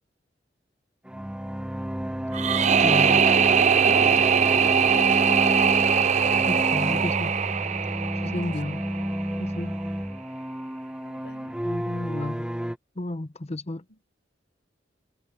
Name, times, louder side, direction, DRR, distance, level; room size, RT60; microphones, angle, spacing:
sound 1, 1.1-12.7, equal, 5° right, 1.2 m, -30 dB
sound 2, 2.3-9.3, right 7 dB, 40° right, 0.5 m, -21 dB
voice 1, 2.8-3.2 6.5-7.3 8.2-8.8 9.4-9.8 11.6-12.5 13.0-13.8, left 1 dB, 35° left, 0.8 m, -32 dB
voice 2, 3.8-5.2 8.2-8.8 11.0-11.5 13.9-14.0, left 1 dB, 80° left, 5.6 m, -45 dB
head